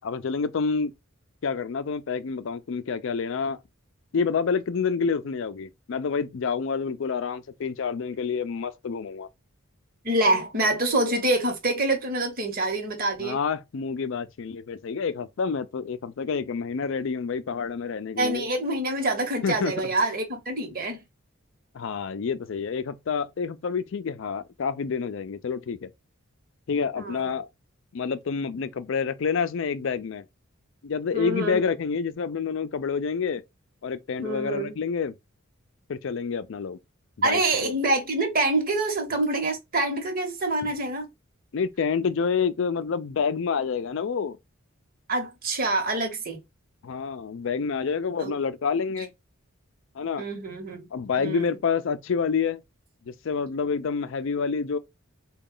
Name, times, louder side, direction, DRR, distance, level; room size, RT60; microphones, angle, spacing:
voice 1, 0.0-0.9 1.4-3.6 4.1-9.3 13.2-18.5 19.4-19.9 21.7-25.9 26.7-27.5 27.9-30.2 30.8-33.4 33.8-35.1 35.9-36.8 37.2-37.7 41.5-44.4 46.8-49.1 49.9-50.2 50.9-52.6 53.1-54.8, left 5 dB, 60° left, 0.4 m, -28 dB
voice 2, 10.0-13.4 18.2-21.0 27.0-27.3 31.1-31.6 34.2-34.8 37.2-41.1 45.1-46.4 48.2-48.3 50.2-50.9 51.2-51.5, right 2 dB, 45° right, 1.1 m, -26 dB
3.9 x 2.3 x 3.7 m
head